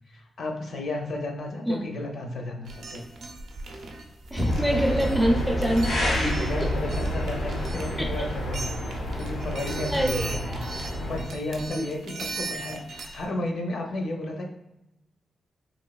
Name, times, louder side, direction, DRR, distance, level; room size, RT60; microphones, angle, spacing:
voice 1, 0.1-3.0 6.1-14.5, left 2 dB, 60° left, 2 dB, 0.5 m, -33 dB
sound 1, 2.7-13.3, right 3 dB, 70° right, 0.5 m, -39 dB
voice 2, 4.3-6.7 8.0-8.1 9.6-10.9 11.7-11.8, equal, ahead, 1 dB, 0.4 m, -26 dB
sound 2, 4.4-11.2, equal, 80° left, 1.0 m, -29 dB
3.1 x 3.0 x 2.3 m, 0.89 s
wide cardioid pair, 160°, 0 cm